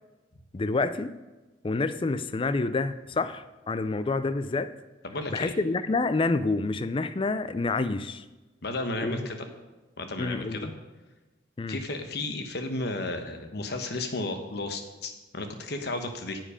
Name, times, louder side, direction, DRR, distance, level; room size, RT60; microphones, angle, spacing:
voice 1, 0.5-1.2 1.6-4.7 5.3-8.2 9.0-9.3 10.2-10.7 11.6-11.8, left 3 dB, 30° left, 13 dB, 0.4 m, -28 dB
voice 2, 5.0-5.5 8.6-9.5 10.0-10.7 11.7-16.4, left 2 dB, 60° left, 7 dB, 1.1 m, -33 dB
9.9 x 7.7 x 5.0 m, 1.2 s
head